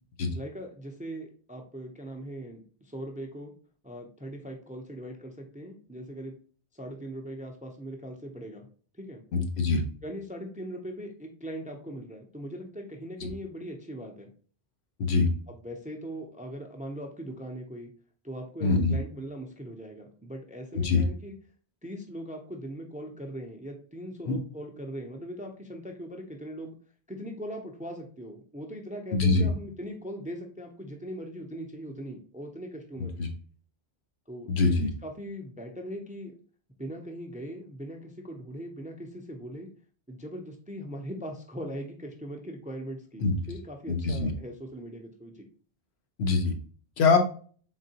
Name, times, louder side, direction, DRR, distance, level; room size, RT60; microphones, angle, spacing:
voice 1, 0.3-3.5 3.8-6.3 6.7-8.7 9.0-9.2 10.0-14.3 15.5-17.9 18.2-21.3 21.8-26.8 27.1-33.1 34.3-34.7 35.0-36.3 36.8-39.7 40.1-45.5, equal, 10° right, 3 dB, 0.4 m, -40 dB
voice 2, 9.3-9.8 13.2-13.3 15.0-15.3 18.6-19.0 20.7-21.0 24.3-24.4 29.1-29.5 33.2-33.3 34.5-34.9 43.2-43.3 43.9-44.3 46.2-46.5 47.0-47.2, left 4 dB, 85° left, 4 dB, 1.0 m, -23 dB
3.8 x 3.7 x 2.7 m, 0.43 s
omnidirectional pair, 1.0 m